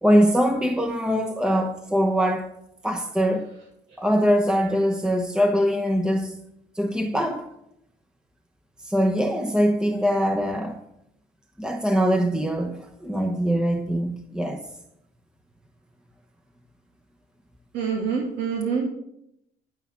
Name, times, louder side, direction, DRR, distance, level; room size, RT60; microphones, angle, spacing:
voice 1, 0.0-2.5 2.8-3.5 4.0-6.4 6.7-7.5 8.8-10.8 11.6-14.6, equal, 5° right, 0.9 m, -22 dB
voice 2, 17.7-18.9, right 6 dB, 85° right, 2.3 m, -26 dB
12.0 x 5.7 x 7.0 m
cardioid pair, 110°, 17 cm